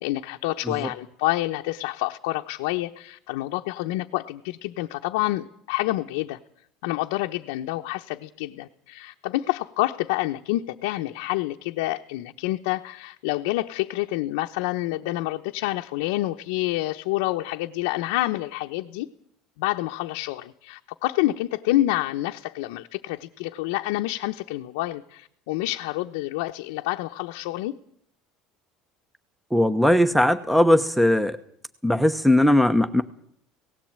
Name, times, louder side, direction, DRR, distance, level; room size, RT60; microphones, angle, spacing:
voice 1, 0.0-6.4 6.8-19.1 19.6-27.7, left 17 dB, 85° left, 3 dB, 0.9 m, -28 dB
voice 2, 29.5-31.4 31.8-33.0, left 1 dB, ahead, 11 dB, 1.0 m, -19 dB
18.0 x 16.0 x 8.8 m, 0.69 s
supercardioid pair, 125°, 0 cm